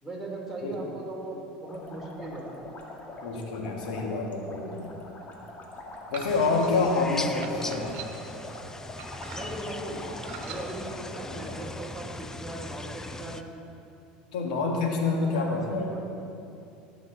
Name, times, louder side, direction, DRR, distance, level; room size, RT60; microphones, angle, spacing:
voice 1, 0.0-2.5 9.3-10.0 10.4-13.4 14.9-16.0, right 2 dB, 5° right, -4 dB, 3.1 m, -38 dB
voice 2, 0.6-0.9 3.2-4.9 6.1-8.0 14.3-15.9, left 3 dB, 85° left, 1 dB, 1.7 m, -27 dB
sound 1, 1.6-11.6, left 2 dB, 40° left, 1.9 m, -43 dB
sound 2, 6.1-6.7 7.4-8.4 9.0-9.7 10.2-10.7, right 7 dB, 60° right, 1.3 m, -43 dB
sound 3, 6.3-13.4, left 2 dB, 15° left, 0.6 m, -40 dB
18.0 x 7.0 x 4.0 m, 2.7 s
supercardioid pair, 95°, 4 cm